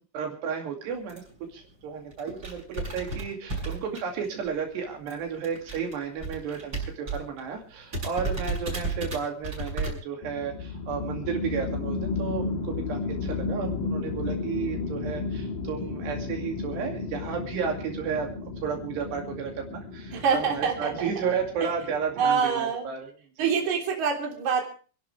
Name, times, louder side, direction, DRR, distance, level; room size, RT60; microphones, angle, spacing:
voice 1, 0.1-1.2 1.5-18.3 18.6-23.1 23.4-23.5, right 6 dB, 75° right, 2 dB, 4.6 m, -33 dB
sound 1, 1.1-1.3 1.8-1.9 2.1-4.5 4.7-7.4 7.6-7.7 7.9-9.9, right 3 dB, 20° right, 7.5 m, -33 dB
sound 2, 10.2-22.3, left 4 dB, 55° left, 3.5 m, -33 dB
voice 2, 20.1-21.3 21.6-21.7 22.2-22.9 23.4-24.6, right 6 dB, 45° right, 1 dB, 4.4 m, -26 dB
28.5 x 11.5 x 3.3 m, 0.39 s
omnidirectional pair, 4.9 m